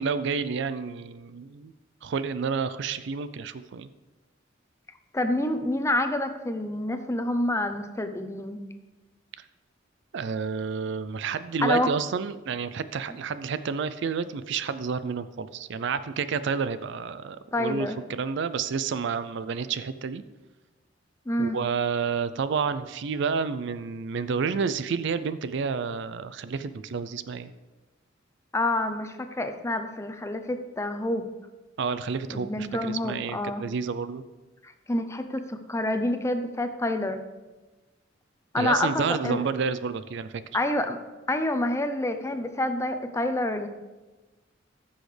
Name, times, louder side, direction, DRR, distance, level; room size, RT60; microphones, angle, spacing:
voice 1, 0.0-1.7 2.0-3.9 9.4-9.5 10.1-20.2 21.4-27.5 31.8-34.2 38.6-40.4, right 5 dB, 65° right, 13 dB, 0.4 m, -30 dB
voice 2, 5.1-8.6 11.6-11.9 17.5-18.0 21.3-21.6 28.5-31.3 32.3-33.6 34.6-37.2 38.5-39.4 40.5-41.0 41.3-43.7, left 1 dB, 15° left, 8 dB, 0.6 m, -28 dB
15.0 x 6.3 x 3.3 m, 1.2 s
head